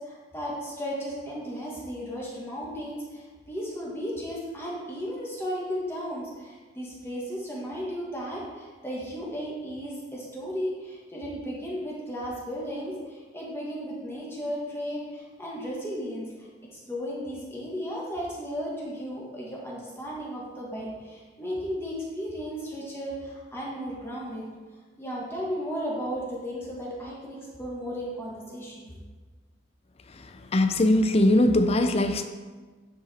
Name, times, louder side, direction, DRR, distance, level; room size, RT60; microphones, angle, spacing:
voice 1, 0.0-16.3 16.9-24.5 25.0-28.9, equal, 15° left, -5 dB, 1.4 m, -35 dB
voice 2, 30.5-32.2, left 1 dB, 35° left, 8 dB, 0.5 m, -21 dB
9.5 x 5.0 x 4.3 m, 1.4 s
head